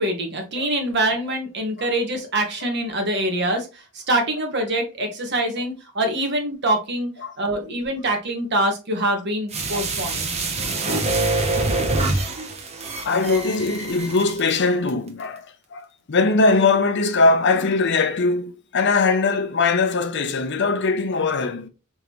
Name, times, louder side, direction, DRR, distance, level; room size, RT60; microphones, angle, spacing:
voice 1, 0.0-10.3, right 1 dB, 55° right, 1.2 m, -24 dB
sound 1, 9.5-14.6 14.9-15.0, right 2 dB, 30° right, 0.7 m, -25 dB
voice 2, 10.5-11.3 12.1-12.3 13.0-21.7, left 3 dB, 55° left, 0.6 m, -21 dB
3.9 x 3.6 x 3.0 m
head